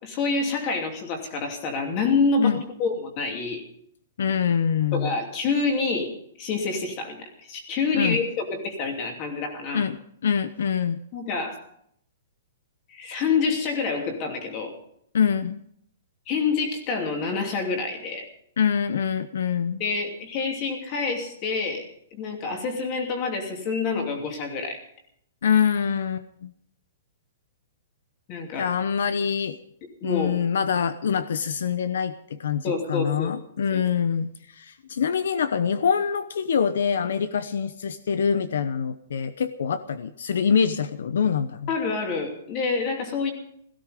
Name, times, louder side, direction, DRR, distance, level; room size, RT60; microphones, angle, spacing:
voice 1, 0.0-3.6 4.9-6.1 6.4-9.9 11.1-11.6 12.9-14.7 16.3-18.2 19.8-21.8 22.1-24.8 28.3-28.7 30.0-30.4 32.6-33.3 33.7-33.8 41.7-43.3, left 4 dB, 25° left, 3 dB, 2.8 m, -27 dB
voice 2, 4.2-5.1 7.9-8.2 9.7-11.0 15.1-15.6 18.6-19.8 25.4-26.5 28.6-29.6 30.0-41.7, left 7 dB, 70° left, 13 dB, 0.9 m, -25 dB
17.0 x 15.5 x 5.1 m, 0.71 s
hypercardioid pair, 180°, 0 cm